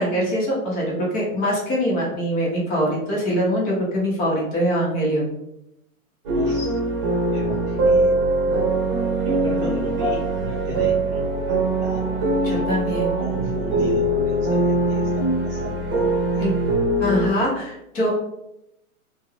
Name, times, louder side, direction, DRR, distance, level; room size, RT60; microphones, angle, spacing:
voice 1, 0.0-5.3 10.7-10.8 12.4-13.1 16.4-16.5 17.0-18.1, equal, 20° left, -4 dB, 0.8 m, -23 dB
voice 2, 6.3-6.7 7.3-8.6 9.2-16.5, right 1 dB, 25° right, -6 dB, 0.5 m, -34 dB
sound 1, 6.3-17.3, right 2 dB, 40° right, 0.9 m, -22 dB
2.6 x 2.3 x 3.3 m, 0.82 s
hypercardioid pair, 140°, 43 cm